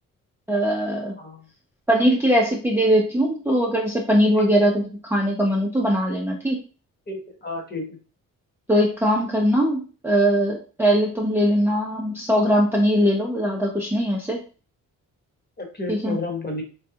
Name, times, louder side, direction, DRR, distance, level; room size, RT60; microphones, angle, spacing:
voice 1, 0.5-1.1 1.9-6.6 8.7-14.4 15.9-16.2, equal, 5° right, -2 dB, 0.6 m, -21 dB
voice 2, 4.3-4.7 7.1-8.0 15.6-16.6, left 2 dB, 30° left, 1 dB, 1.2 m, -32 dB
3.2 x 2.3 x 2.8 m, 0.36 s
cardioid pair, 70°, 34 cm